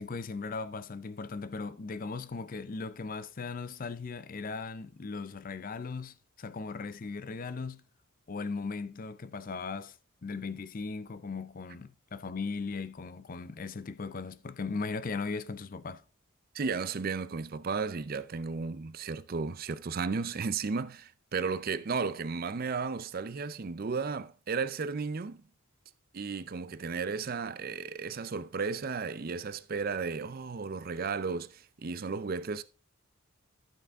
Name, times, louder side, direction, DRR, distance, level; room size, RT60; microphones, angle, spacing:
voice 1, 0.0-7.8 8.3-9.9 10.2-16.0, left 4 dB, 40° left, 0.5 m, -38 dB
voice 2, 16.5-25.4 26.1-32.6, right 4 dB, 45° right, 0.5 m, -34 dB
11.5 x 6.0 x 3.5 m
head